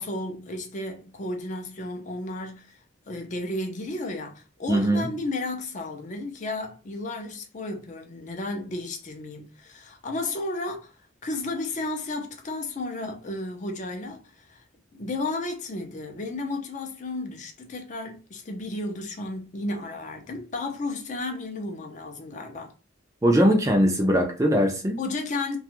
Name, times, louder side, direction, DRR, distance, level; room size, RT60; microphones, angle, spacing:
voice 1, 0.0-2.8 3.1-10.9 11.2-14.6 14.9-22.7 25.0-25.6, left 2 dB, 40° left, 0.5 m, -33 dB
voice 2, 4.7-5.1 23.2-25.0, equal, 15° right, 0.4 m, -21 dB
2.4 x 2.3 x 3.0 m
head